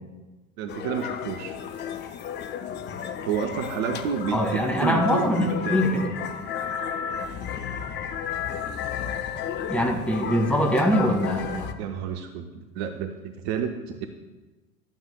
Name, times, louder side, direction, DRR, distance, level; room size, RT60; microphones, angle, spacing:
voice 1, 0.6-1.6 3.3-5.9 11.8-13.1 13.4-14.1, right 7 dB, 50° right, 6 dB, 0.8 m, -30 dB
sound 1, 0.7-11.7, left 8 dB, 25° left, 0.5 m, -33 dB
voice 2, 4.3-6.1 9.7-11.8, equal, 5° left, 0 dB, 1.7 m, -23 dB
13.0 x 8.8 x 2.2 m, 1.2 s
figure-of-eight pair, 75°, 42 cm